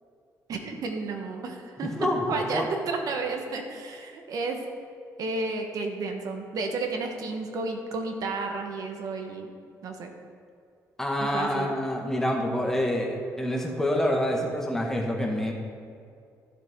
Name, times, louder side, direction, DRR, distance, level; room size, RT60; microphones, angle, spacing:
voice 1, 0.5-1.9 2.3-4.6 5.2-9.5 9.8-10.1 11.2-11.7, right 3 dB, 65° right, 4 dB, 1.3 m, -32 dB
voice 2, 1.8-2.7 11.0-15.5, left 1 dB, 5° left, -1 dB, 1.7 m, -27 dB
15.0 x 7.2 x 3.7 m, 2.3 s
cardioid pair, 105°, 7 cm